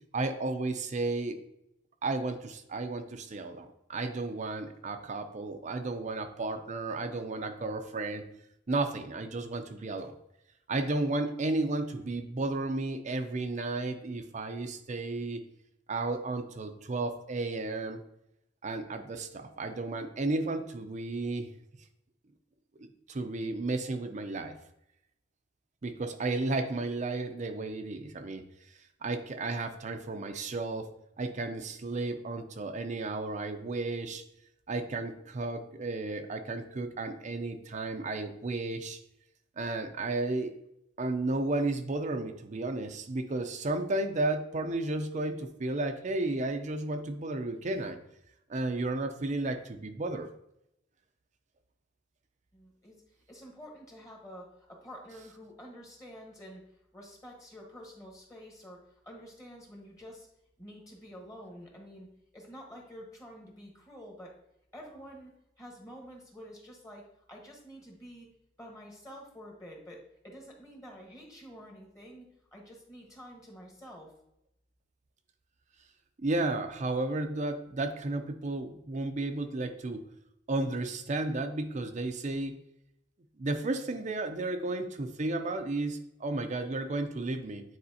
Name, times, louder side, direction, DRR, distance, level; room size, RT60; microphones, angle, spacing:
voice 1, 0.1-1.4 2.0-8.3 8.7-10.1 10.7-15.4 15.9-18.0 18.6-21.5 22.8-24.6 25.8-28.5 29.0-30.9 31.2-34.2 34.7-39.0 39.6-40.5 41.0-48.0 48.5-50.3 76.2-80.1 80.5-82.6 83.4-87.6, right 2 dB, 40° right, 7 dB, 0.5 m, -33 dB
voice 2, 52.5-53.0 53.3-56.6 56.9-60.3 60.6-62.1 62.3-64.3 64.7-65.3 65.6-68.3 68.6-74.1, equal, 15° left, -1 dB, 1.3 m, -49 dB
9.5 x 4.1 x 2.8 m, 0.79 s
head